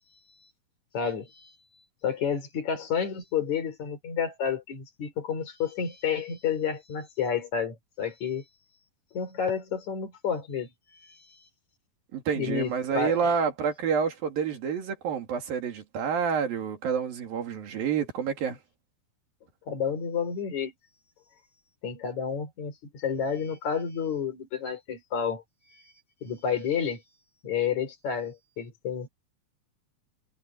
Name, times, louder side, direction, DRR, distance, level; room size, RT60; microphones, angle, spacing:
voice 1, 0.9-1.5 2.0-8.4 9.1-10.7 11.0-11.2 12.3-13.3 19.7-20.7 21.8-25.4 25.8-25.9 26.2-27.0 27.4-29.1, left 7 dB, 50° left, 5.0 m, -30 dB
voice 2, 12.1-18.6, right 6 dB, 65° right, 4.4 m, -28 dB
omnidirectional pair, 4.4 m